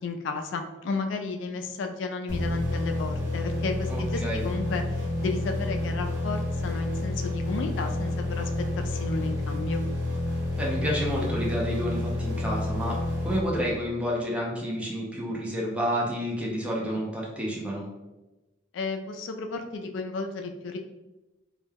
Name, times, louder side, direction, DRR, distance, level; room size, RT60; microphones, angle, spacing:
voice 1, 0.0-8.5 8.8-9.8 18.7-20.8, left 4 dB, 70° left, 5 dB, 0.3 m, -33 dB
sound 1, 2.3-14.0, left 1 dB, 65° right, 1.0 m, -29 dB
voice 2, 3.9-4.4 10.6-13.0 13.2-17.9, equal, 5° right, -4 dB, 0.4 m, -29 dB
2.2 x 2.1 x 3.2 m, 1.1 s
head